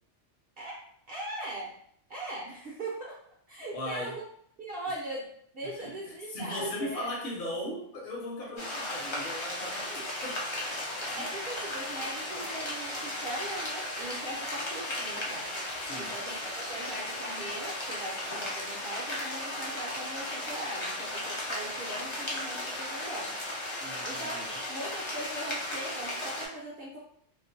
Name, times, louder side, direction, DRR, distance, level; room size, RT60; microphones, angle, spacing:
voice 1, 0.6-1.8 2.1-4.2 4.6-7.1 10.9-15.5 15.9-23.4 24.0-27.0, right 1 dB, 60° right, -4 dB, 0.7 m, -40 dB
voice 2, 3.7-4.1 5.8-5.9 6.3-10.4 11.1-11.2 15.9-16.1 23.8-24.5, left 1 dB, 60° left, -3 dB, 0.8 m, -37 dB
sound 1, 8.6-26.5, left 1 dB, 40° left, 0.4 m, -36 dB
2.5 x 2.1 x 2.5 m, 0.65 s
omnidirectional pair, 1.2 m